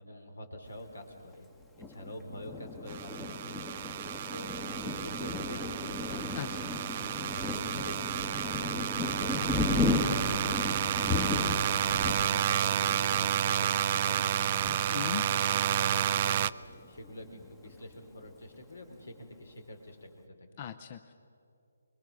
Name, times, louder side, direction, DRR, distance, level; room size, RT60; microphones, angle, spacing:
voice 1, 0.0-1.5 1.9-3.5 4.3-6.2 6.5-16.4 16.9-20.1 20.4-20.5, left 1 dB, 75° left, 5 dB, 3.5 m, -47 dB
Thunder, 1.8-16.1 16.6-16.7 17.0-17.7, left 3 dB, 10° left, 1.1 m, -35 dB
sound 1, 2.9-16.5, right 10 dB, 35° right, 0.4 m, -31 dB
voice 2, 6.3-6.7 14.9-15.3 20.6-21.1, left 10 dB, 35° left, 9 dB, 0.7 m, -39 dB
24.5 x 21.5 x 6.4 m, 2.7 s
figure-of-eight pair, 150°, 0 cm